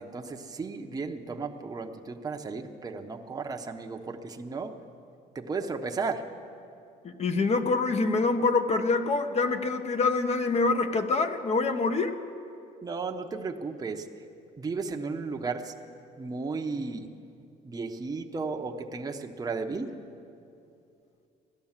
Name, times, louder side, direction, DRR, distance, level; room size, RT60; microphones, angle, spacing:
voice 1, 0.0-4.8 5.3-6.3 12.8-14.1 14.6-15.9 16.2-17.1 17.6-19.9, right 4 dB, 20° right, 3 dB, 0.9 m, -34 dB
voice 2, 7.0-12.1, left 3 dB, 40° left, 8 dB, 1.1 m, -25 dB
16.0 x 11.5 x 7.4 m, 2.6 s
cardioid pair, 110°, 17 cm